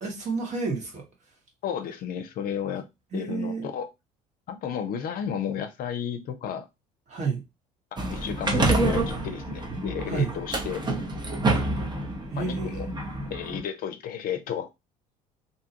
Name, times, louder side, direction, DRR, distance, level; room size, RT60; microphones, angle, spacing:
voice 1, 0.0-1.1 3.1-3.7 7.1-7.4 10.0-10.3 12.3-12.9, right 4 dB, 45° right, 1.3 m, -30 dB
voice 2, 1.6-2.9 3.1-3.9 4.5-6.7 8.0-10.9 12.4-12.9 13.3-14.7, left 8 dB, 55° left, 0.6 m, -32 dB
sound 1, 8.0-13.6, right 2 dB, 25° right, 0.9 m, -28 dB
2.7 x 2.3 x 2.8 m
hypercardioid pair, 70°, 17 cm